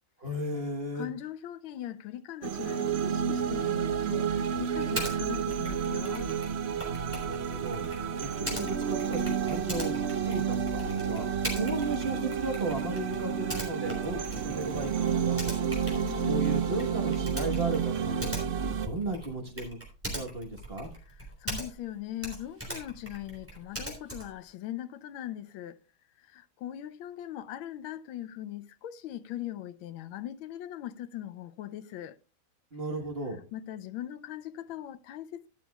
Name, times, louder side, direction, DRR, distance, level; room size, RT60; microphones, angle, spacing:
voice 1, 0.2-1.1 6.8-16.0 16.2-19.8 20.1-20.9 32.7-33.4, right 2 dB, 35° right, 1.5 m, -35 dB
voice 2, 0.9-6.3 15.9-16.5 21.2-25.8 26.2-32.2 33.5-35.5, left 12 dB, 85° left, 1.5 m, -40 dB
sound 1, 2.4-18.9, right 7 dB, 80° right, 0.5 m, -30 dB
Typing, 4.9-5.2 5.5-21.9 22.2-24.4, right 1 dB, 5° right, 3.3 m, -41 dB
12.0 x 12.0 x 2.3 m
omnidirectional pair, 2.1 m